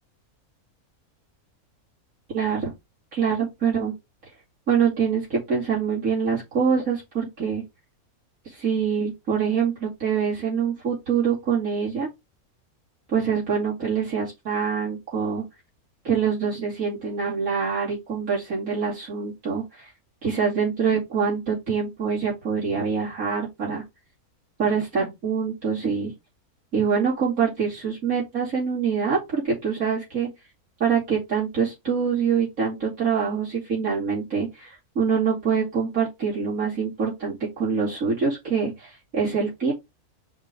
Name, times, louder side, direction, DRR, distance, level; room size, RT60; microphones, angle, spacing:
voice 1, 2.3-2.7 3.1-3.9 4.7-7.6 8.4-12.1 13.1-15.4 16.0-19.9 20.2-23.8 24.6-26.1 26.7-30.3 30.8-39.7, right 6 dB, 65° right, -7 dB, 3.3 m, -25 dB
5.2 x 5.1 x 3.8 m, 0.21 s
omnidirectional pair, 1.6 m